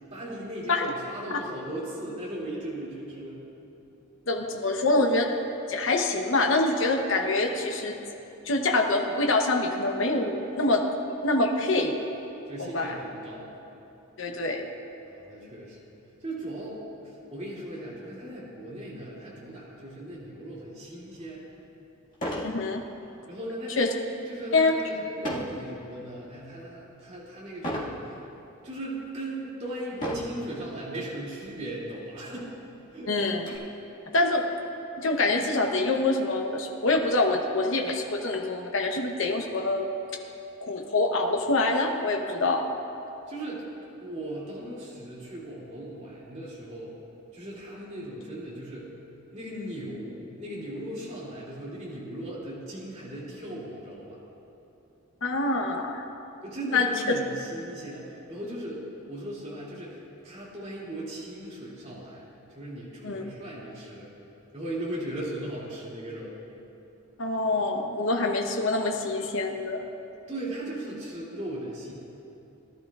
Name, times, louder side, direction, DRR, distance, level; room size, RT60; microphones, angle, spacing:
voice 1, 0.1-3.4 12.4-13.5 15.0-15.8 16.2-21.5 23.3-23.9 24.3-28.2 28.6-32.6 32.9-33.2 34.1-34.3 43.3-46.9 47.3-48.9 49.3-54.2 56.4-62.2 62.5-64.1 64.5-66.4 70.3-71.9, right 1 dB, 30° right, -7 dB, 2.5 m, -38 dB
voice 2, 4.3-5.3 5.7-8.0 8.4-10.8 11.2-11.9 12.6-12.9 14.2-14.6 22.4-22.8 23.8-23.9 24.5-24.7 33.1-33.5 34.1-34.4 35.0-39.9 40.6-42.7 55.2-56.1 56.7-56.9 63.0-63.2 67.2-69.9, left 2 dB, 65° left, 2 dB, 0.9 m, -25 dB
sound 1, 21.2-21.3 22.1-22.6 23.0-23.3 25.2-25.6 26.2-26.6 27.6-28.0 28.7-28.8 29.9-30.4 31.4-31.6 31.9-32.0 32.4-33.6, equal, 35° left, 1.9 m, -34 dB
18.0 x 11.5 x 2.4 m, 2.9 s
head